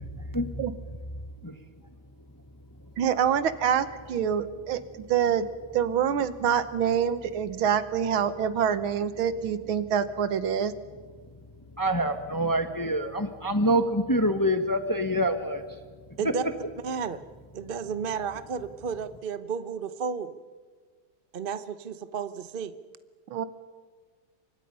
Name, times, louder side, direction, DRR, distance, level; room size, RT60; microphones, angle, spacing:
voice 1, 3.0-5.5 5.7-10.7 23.3-23.5, right 8 dB, 80° right, 13 dB, 1.9 m, -26 dB
voice 2, 11.8-15.8, equal, 15° left, 8 dB, 0.9 m, -26 dB
voice 3, 16.8-17.2 17.5-20.3 21.3-22.7, right 6 dB, 50° right, 12 dB, 0.6 m, -32 dB
28.5 x 25.0 x 5.5 m, 1.5 s
omnidirectional pair, 2.2 m